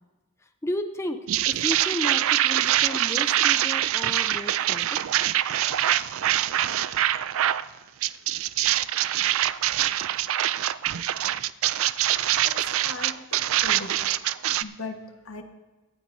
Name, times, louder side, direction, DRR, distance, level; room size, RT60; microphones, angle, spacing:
voice 1, 0.6-5.0, left 1 dB, 15° left, 7 dB, 0.6 m, -33 dB
sound 1, 1.3-7.6 8.0-14.6, right 12 dB, 75° right, 0.4 m, -24 dB
voice 2, 12.4-13.9 14.6-15.4, left 3 dB, 85° left, 5 dB, 1.4 m, -39 dB
18.5 x 12.0 x 2.7 m, 1.2 s
head